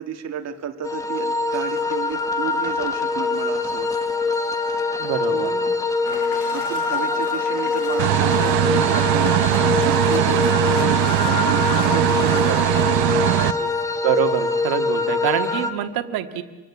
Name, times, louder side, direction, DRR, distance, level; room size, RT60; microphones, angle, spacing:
voice 1, 0.0-3.9 5.2-5.7 6.5-13.7, right 8 dB, 40° right, 5 dB, 2.5 m, -32 dB
sound 1, 0.8-15.7, left 3 dB, 10° left, 1.6 m, -24 dB
voice 2, 5.0-5.5 12.4-12.8 14.0-16.4, right 11 dB, 60° right, 6 dB, 2.1 m, -25 dB
Domestic sounds home sounds, 6.0-12.8, left 9 dB, 75° left, 1.8 m, -36 dB
sound 2, 8.0-13.5, right 16 dB, 80° right, 1.1 m, -20 dB
27.0 x 22.5 x 8.7 m, 1.3 s
cardioid pair, 155°, 40 cm